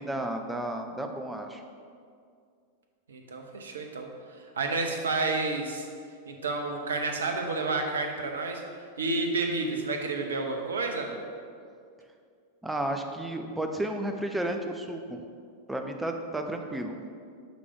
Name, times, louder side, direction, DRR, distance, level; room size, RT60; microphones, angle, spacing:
voice 1, 0.0-1.6 12.6-15.2 15.7-17.0, right 1 dB, 5° right, 4 dB, 0.5 m, -32 dB
voice 2, 3.1-4.1 4.6-5.9 6.3-8.6 9.0-11.1, right 3 dB, 70° right, 3 dB, 0.6 m, -30 dB
6.1 x 3.3 x 5.2 m, 2.3 s
figure-of-eight pair, 90°, 0 cm